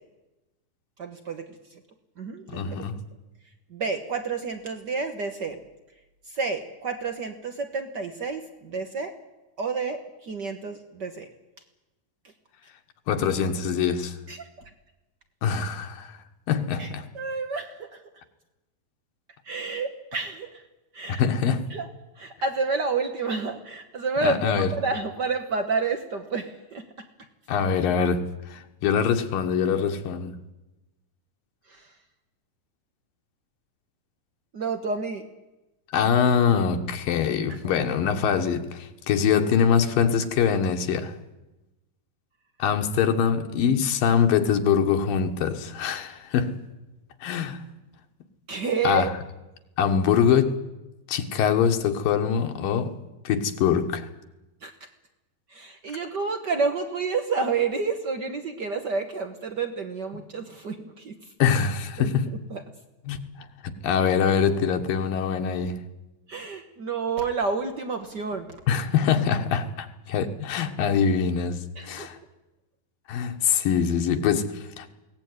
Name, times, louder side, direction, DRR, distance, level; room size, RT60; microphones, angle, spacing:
voice 1, 1.0-1.4 2.2-2.8 3.7-5.6 6.3-9.1 9.6-11.3 14.3-14.5 16.8-18.0 19.4-20.6 20.9-21.2 21.7-21.9 22.2-26.8 31.7-31.9 34.5-35.3 37.5-37.7 48.5-49.1 54.6-54.7 55.5-61.2 62.0-62.1 62.5-62.6 66.3-68.6 71.8-72.1, right 4 dB, 85° right, 0.9 m, -29 dB
voice 2, 2.5-3.0 13.1-14.2 15.4-16.2 16.5-17.1 21.1-21.7 24.2-24.7 27.5-30.4 35.9-41.1 42.6-46.6 47.2-47.6 48.8-49.1 49.8-50.6 51.1-52.9 53.2-54.1 60.1-60.2 61.4-62.3 63.1-65.8 68.7-72.2 73.1-74.9, left 7 dB, 75° left, 3.0 m, -24 dB
22.0 x 18.0 x 9.6 m
omnidirectional pair, 4.1 m